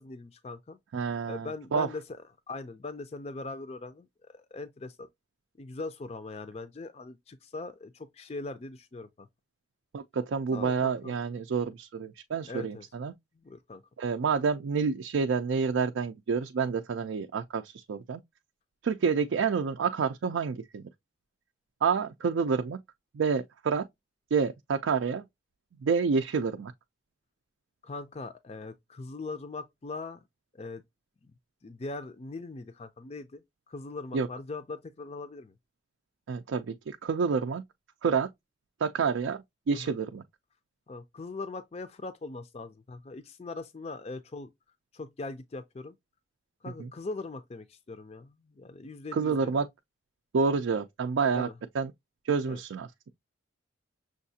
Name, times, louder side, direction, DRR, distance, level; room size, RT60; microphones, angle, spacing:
voice 1, 0.0-0.8 1.3-2.0 2.5-5.1 5.6-9.3 10.5-11.2 12.5-12.9 13.4-13.8 27.8-30.2 30.5-30.8 31.2-31.3 31.6-35.5 39.7-39.9 40.9-44.5 44.9-46.0 46.6-49.6 51.3-51.5 52.5-52.6, left 3 dB, 30° left, 0.4 m, -41 dB
voice 2, 0.9-1.9 9.9-13.1 14.0-18.2 18.8-20.8 21.8-22.8 23.1-23.9 24.3-25.3 25.8-26.7 34.1-34.3 36.3-37.6 38.0-38.3 38.8-40.2 46.8-46.9 49.1-49.7 50.3-51.5 51.7-51.9 52.3-53.1, right 5 dB, 80° right, 0.4 m, -28 dB
6.3 x 2.4 x 2.6 m
head